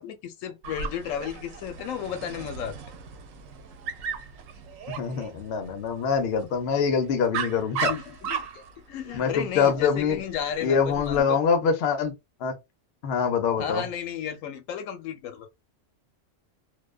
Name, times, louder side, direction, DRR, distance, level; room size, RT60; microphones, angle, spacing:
voice 1, 0.0-2.7 7.7-11.4 13.6-15.5, left 9 dB, 90° left, 1.0 m, -34 dB
Dog, 0.6-11.2, right 6 dB, 90° right, 1.0 m, -37 dB
voice 2, 5.0-7.9 9.1-10.2 10.6-12.1 12.4-12.5 13.0-13.9, left 6 dB, 60° left, 0.8 m, -24 dB
2.4 x 2.2 x 2.3 m
omnidirectional pair, 1.3 m